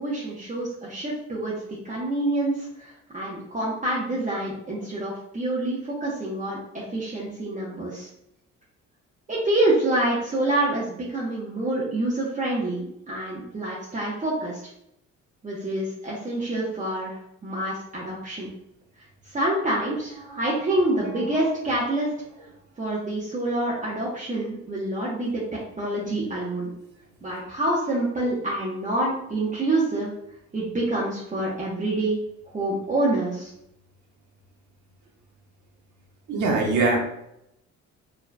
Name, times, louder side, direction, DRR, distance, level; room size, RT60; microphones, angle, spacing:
voice 1, 0.0-1.5 1.8-8.1 9.3-14.6 15.4-18.5 19.3-22.1 22.8-25.4 25.8-26.7 27.2-30.1 30.5-32.2 32.5-33.5, right 1 dB, 25° right, -6 dB, 1.0 m, -27 dB
voice 2, 36.3-37.0, right 3 dB, 75° right, 0 dB, 1.2 m, -22 dB
4.7 x 3.1 x 2.2 m, 0.77 s
cardioid pair, 90°, 30 cm